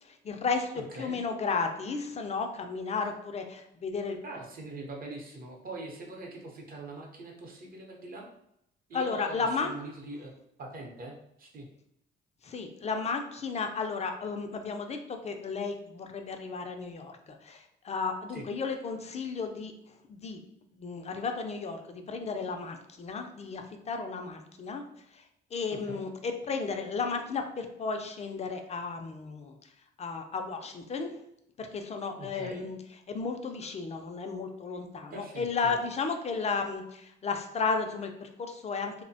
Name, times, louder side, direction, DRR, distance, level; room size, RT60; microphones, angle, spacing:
voice 1, 0.0-0.7 1.0-4.2 8.9-9.7 12.4-20.4 20.8-24.8 25.1-25.2 25.5-29.7 30.0-31.1 31.6-32.8 33.1-39.0, left 4 dB, 35° left, 5 dB, 0.4 m, -34 dB
voice 2, 0.7-1.2 4.2-8.3 8.9-10.3 10.6-11.7 18.3-18.4 25.7-26.0 32.2-32.7 35.1-35.8, right 2 dB, 45° right, 0 dB, 0.7 m, -43 dB
2.6 x 2.1 x 2.6 m, 0.77 s
cardioid pair, 90°, 20 cm